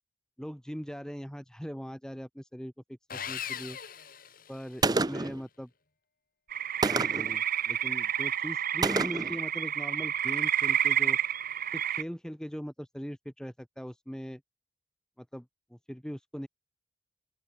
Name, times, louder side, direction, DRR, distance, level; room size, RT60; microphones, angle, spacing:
voice 1, 0.4-2.7 3.1-3.8 4.5-5.7 6.8-11.2 11.7-14.4 15.2-16.5, equal, 5° left, 5.2 m, -40 dB
Sawing, 3.1-5.0, left 8 dB, 50° left, 4.5 m, -40 dB
Gunshot gunfire, 4.8-5.4 6.8-7.4 8.8-9.4, right 3 dB, 20° right, 0.7 m, -28 dB
sound 1, 6.5-12.0, right 10 dB, 50° right, 2.2 m, -29 dB
open air
head